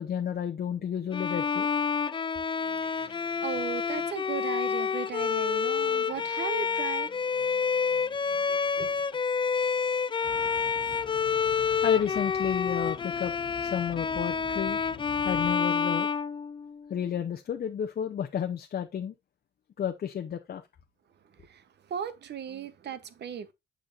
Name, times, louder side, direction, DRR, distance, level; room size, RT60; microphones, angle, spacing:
voice 1, 0.0-1.7 11.8-14.8 15.2-16.1 16.9-19.1 19.8-20.6, left 8 dB, 50° left, 0.8 m, -31 dB
Bowed string instrument, 1.1-17.0, left 6 dB, 25° left, 0.4 m, -28 dB
voice 2, 2.6-9.0 21.4-23.5, right 7 dB, 60° right, 1.0 m, -38 dB
sound 1, 10.2-15.5, left 5 dB, 85° left, 1.5 m, -47 dB
7.5 x 6.6 x 2.6 m
cardioid pair, 90°, 20 cm